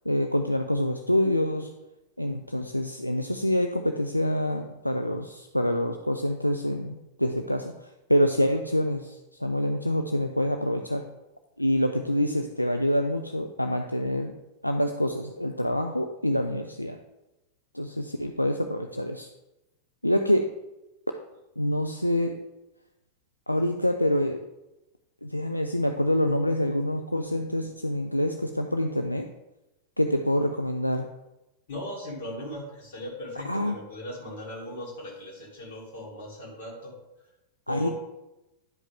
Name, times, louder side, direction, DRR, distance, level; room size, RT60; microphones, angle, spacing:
voice 1, 0.1-1.7 2.2-11.0 11.6-14.3 14.6-17.0 17.7-19.3 20.0-20.5 21.6-22.4 23.5-24.4 25.2-29.3 30.0-31.1 33.5-33.8 37.7-37.9, left 1 dB, 90° left, 5 dB, 0.4 m, -26 dB
voice 2, 31.7-36.9 37.7-37.9, equal, 55° left, -3 dB, 2.7 m, -38 dB
10.5 x 5.2 x 3.5 m, 0.96 s
figure-of-eight pair, 90°, 0 cm